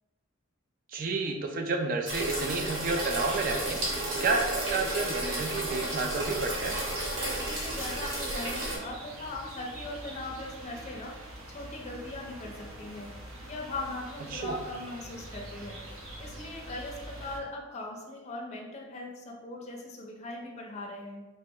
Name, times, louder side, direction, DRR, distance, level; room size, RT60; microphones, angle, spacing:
voice 1, 0.9-3.8 4.1-6.7 14.3-14.6, right 3 dB, 40° right, 4 dB, 0.4 m, -30 dB
sound 1, 2.1-8.8, right 1 dB, 70° right, 0.9 m, -32 dB
sound 2, 6.1-17.4, right 1 dB, 90° right, 0.7 m, -45 dB
voice 2, 7.4-11.1 11.5-13.1 13.5-15.8 16.2-21.2, left 2 dB, 35° left, 0 dB, 0.4 m, -40 dB
3.1 x 2.0 x 3.4 m, 1.2 s
head